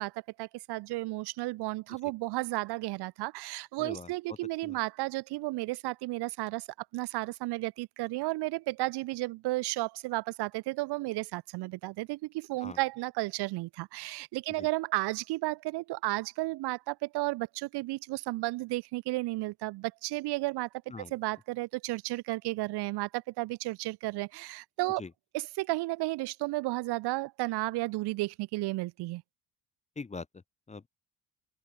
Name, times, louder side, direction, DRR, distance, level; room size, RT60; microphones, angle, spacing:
voice 1, 0.0-6.7 6.9-20.7 21.1-25.0 25.3-29.2, right 20 dB, 70° right, 1.0 m, -33 dB
voice 2, 3.8-4.1 4.6-4.8 12.6-12.8 14.6-14.7 20.9-21.1 25.0-25.1 30.0-30.3 30.7-30.9, left 4 dB, 15° left, 1.0 m, -41 dB
open air
supercardioid pair, 95°, 41 cm